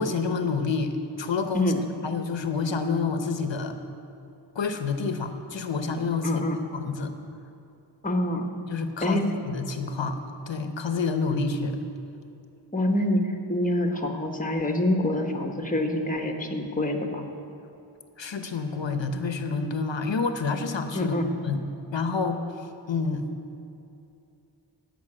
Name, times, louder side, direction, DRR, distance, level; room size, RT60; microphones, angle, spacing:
voice 1, 0.0-1.7 2.0-3.8 4.5-6.4 6.7-7.1 8.7-10.2 10.5-11.8 18.2-21.2 21.4-21.6 21.9-22.4 22.9-23.2, left 4 dB, 70° left, 7 dB, 1.0 m, -28 dB
voice 2, 6.2-6.6 8.0-8.5 9.0-9.3 12.7-17.2 20.9-21.3, left 1 dB, 20° left, 3 dB, 1.4 m, -26 dB
14.0 x 5.9 x 8.8 m, 2.7 s
wide cardioid pair, 55°, 45 cm